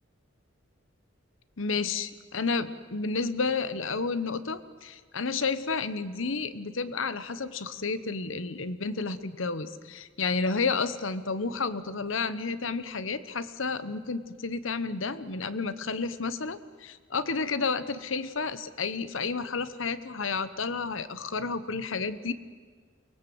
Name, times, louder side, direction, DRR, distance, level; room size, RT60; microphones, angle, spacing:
voice 1, 1.6-22.3, left 4 dB, 75° left, 14 dB, 1.0 m, -31 dB
23.5 x 20.0 x 7.9 m, 1.5 s
head